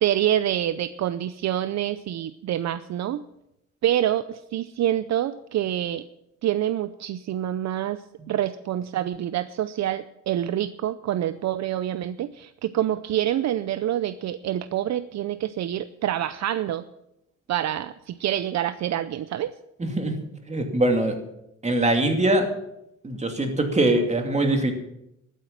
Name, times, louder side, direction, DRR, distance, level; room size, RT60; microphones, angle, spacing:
voice 1, 0.0-3.2 3.8-6.1 6.4-16.8 17.5-19.5, right 11 dB, 60° right, 14 dB, 0.6 m, -26 dB
voice 2, 19.8-20.2 20.5-21.2 21.6-22.5 23.0-24.7, right 1 dB, 20° right, 4 dB, 2.6 m, -22 dB
12.0 x 9.3 x 7.3 m, 0.83 s
cardioid pair, 90°, 30 cm